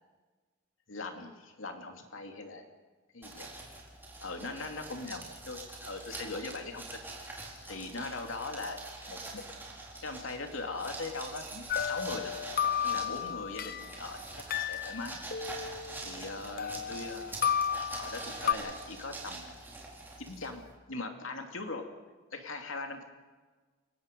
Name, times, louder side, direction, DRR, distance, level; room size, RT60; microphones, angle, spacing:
voice 1, 0.9-2.6 3.1-3.5 4.2-7.1 7.6-8.8 9.1-9.4 10.0-12.3 12.8-15.2 16.0-17.6 18.0-19.5 20.2-21.9 22.3-23.0, left 3 dB, 90° left, 4 dB, 2.7 m, -40 dB
sound 1, 3.2-20.7, right 2 dB, 10° right, 4.3 m, -45 dB
sound 2, 11.7-14.0 14.5-16.3 16.6-18.5, left 8 dB, 50° left, 0.8 m, -33 dB
29.5 x 17.5 x 5.3 m, 1.4 s
head